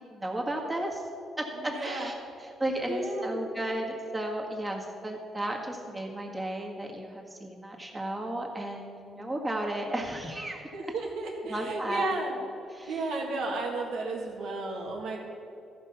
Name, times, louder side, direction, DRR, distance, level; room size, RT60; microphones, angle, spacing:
voice 1, 0.1-1.0 1.4-2.1 2.4-10.6 11.5-12.1 12.7-13.1, right 1 dB, 20° right, 0 dB, 1.9 m, -34 dB
voice 2, 1.6-2.1 2.9-3.4 10.7-12.4 12.9-15.2, right 2 dB, 80° right, 0 dB, 2.0 m, -33 dB
14.5 x 5.4 x 5.7 m, 2.6 s
cardioid pair, 90°, 0 cm